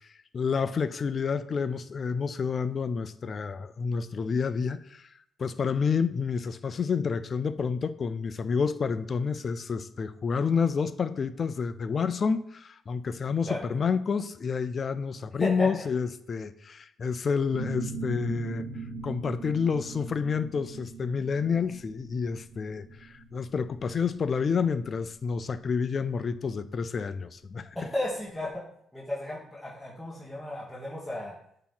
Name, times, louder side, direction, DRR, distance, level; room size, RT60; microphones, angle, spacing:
voice 1, 0.3-5.1 5.4-18.7 19.0-27.8, left 5 dB, 45° left, 0.4 m, -29 dB
sound 1, 17.5-26.9, right 3 dB, 50° right, 1.0 m, -40 dB
voice 2, 27.8-28.6 28.9-31.4, left 1 dB, 5° left, 1.8 m, -34 dB
8.5 x 3.0 x 5.6 m
cardioid pair, 90°, 0 cm